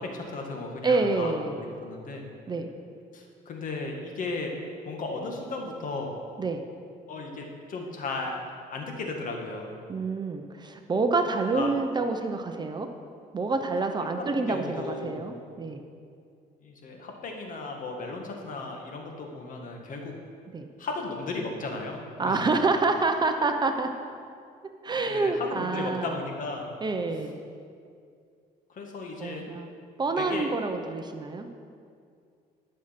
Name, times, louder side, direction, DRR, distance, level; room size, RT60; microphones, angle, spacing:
voice 1, 0.0-2.2 3.1-4.5 4.8-6.1 7.1-8.4 8.7-9.7 11.5-11.7 14.4-15.2 16.6-20.1 20.8-22.5 25.1-26.7 28.7-29.4 30.2-30.5, left 3 dB, 50° left, 1 dB, 1.9 m, -35 dB
voice 2, 0.8-1.6 2.5-2.7 6.4-6.6 9.9-12.9 13.3-15.8 20.5-20.7 22.2-23.9 24.8-26.2 26.8-27.4 29.2-29.7 30.0-31.5, right 3 dB, 25° right, 6 dB, 0.8 m, -27 dB
12.0 x 6.6 x 5.9 m, 2.3 s
cardioid pair, 110°, 17 cm